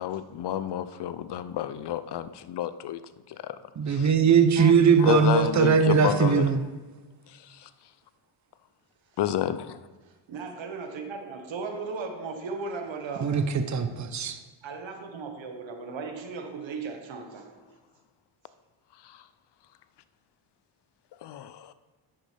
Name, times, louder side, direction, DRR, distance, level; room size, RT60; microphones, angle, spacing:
voice 1, 0.0-3.0 3.4-3.6 3.9-4.1 4.6-4.7 5.0-6.5 7.5-7.7 9.2-9.8 19.0-19.2 21.2-21.7, left 11 dB, 55° left, 0.6 m, -30 dB
voice 2, 3.8-6.6 13.2-14.4, right 6 dB, 35° right, 0.8 m, -20 dB
voice 3, 10.0-13.4 14.6-17.5, right 4 dB, 65° right, 1.6 m, -36 dB
10.5 x 7.8 x 3.4 m
cardioid pair, 75°, 49 cm